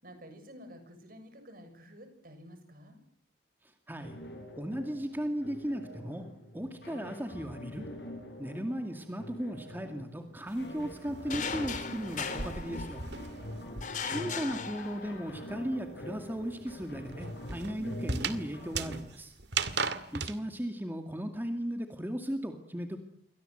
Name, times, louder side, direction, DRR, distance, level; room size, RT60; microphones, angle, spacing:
voice 1, 0.0-3.0 13.2-13.8, equal, 55° right, 8 dB, 6.8 m, -51 dB
sound 1, 4.0-19.0, left 1 dB, 65° left, 7.7 m, -45 dB
voice 2, 4.6-6.2 6.5-7.9 8.4-13.0 14.0-19.3 20.1-23.0, equal, 10° right, 5 dB, 2.3 m, -36 dB
sound 2, 10.5-14.2 14.5-20.4, right 5 dB, 75° right, 2.1 m, -38 dB
sound 3, 11.3-13.3 13.8-15.4, left 5 dB, 45° left, 3.7 m, -38 dB
29.0 x 24.0 x 8.0 m, 0.68 s
head